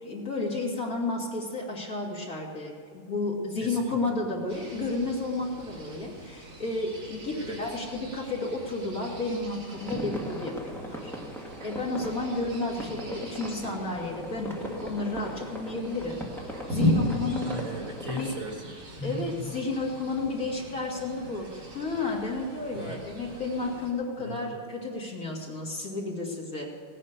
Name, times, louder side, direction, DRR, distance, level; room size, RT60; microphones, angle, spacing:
voice 1, 0.0-11.1 11.6-17.5 18.2-18.3 19.0-21.5 21.7-26.7, left 2 dB, 40° left, -2 dB, 2.6 m, -32 dB
voice 2, 3.6-4.2 7.4-7.6 17.4-19.5 22.7-23.0 24.2-24.5, equal, 45° right, 1 dB, 2.1 m, -37 dB
sound 1, 4.5-23.9, left 1 dB, 80° right, 3.9 m, -37 dB
sound 2, 9.7-18.3, equal, ahead, 1.3 m, -39 dB
17.5 x 9.7 x 6.8 m, 2.3 s
omnidirectional pair, 2.3 m